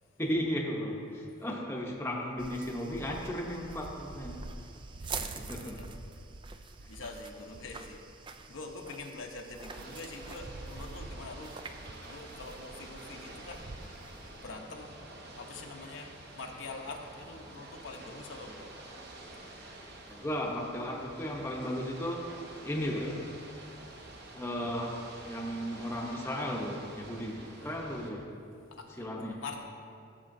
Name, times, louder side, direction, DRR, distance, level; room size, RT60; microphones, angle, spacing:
voice 1, 0.2-4.7 5.1-5.9 20.1-22.3 22.6-23.3 24.3-28.3 29.0-29.4, equal, 15° left, -1 dB, 0.8 m, -35 dB
sound 1, 2.4-14.5, right 4 dB, 25° right, 0.3 m, -45 dB
voice 2, 5.0-6.1 6.9-8.0 8.5-11.6 11.9-13.7 14.4-15.0 15.4-16.1 16.3-18.7 28.7-29.6, left 3 dB, 75° left, 2 dB, 0.8 m, -45 dB
Ocean / Boat Water vehicle, 9.7-28.1, right 2 dB, 55° right, 0.9 m, -49 dB
14.0 x 6.8 x 2.6 m, 2.4 s
head